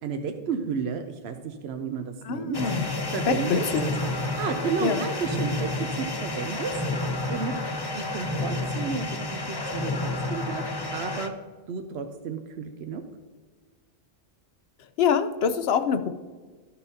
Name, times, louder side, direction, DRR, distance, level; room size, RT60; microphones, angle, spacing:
voice 1, 0.0-2.6 2.8-3.6 4.4-6.7 7.3-7.5 7.9-10.6 10.9-11.3 11.7-13.0, right 6 dB, 80° right, 6 dB, 0.9 m, -32 dB
voice 2, 2.2-2.8 3.3-3.9 4.8-5.0 15.0-16.1, left 7 dB, 75° left, 10 dB, 0.9 m, -25 dB
sound 1, 2.5-11.3, left 2 dB, 30° left, 0.6 m, -30 dB
13.5 x 5.6 x 2.7 m, 1.4 s
omnidirectional pair, 1.1 m